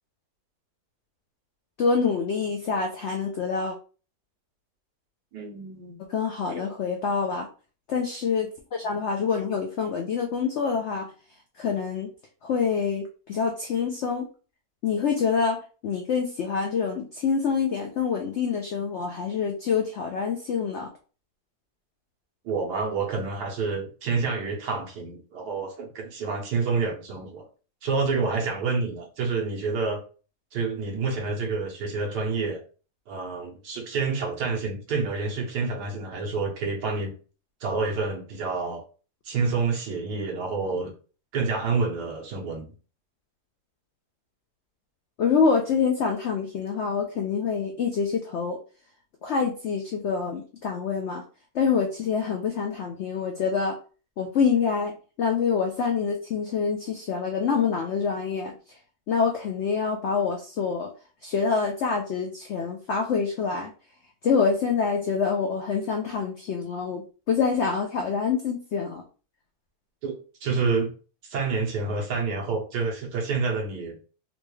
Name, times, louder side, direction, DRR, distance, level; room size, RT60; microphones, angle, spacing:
voice 1, 1.8-3.7 6.1-7.5 7.9-11.1 11.6-12.1 12.4-14.3 14.8-15.6 15.8-20.9 45.2-48.6 49.2-51.2 51.5-53.8 54.2-54.9 55.2-58.5 59.1-60.9 61.2-63.7 64.2-69.0, left 5 dB, 75° left, 0.6 m, -26 dB
voice 2, 5.3-6.0 22.4-27.5 27.8-30.0 30.5-32.6 33.1-37.1 37.6-38.8 39.2-40.9 41.3-42.7 70.0-70.9 71.2-74.0, right 4 dB, 90° right, 1.5 m, -28 dB
3.9 x 2.3 x 3.1 m
omnidirectional pair, 1.8 m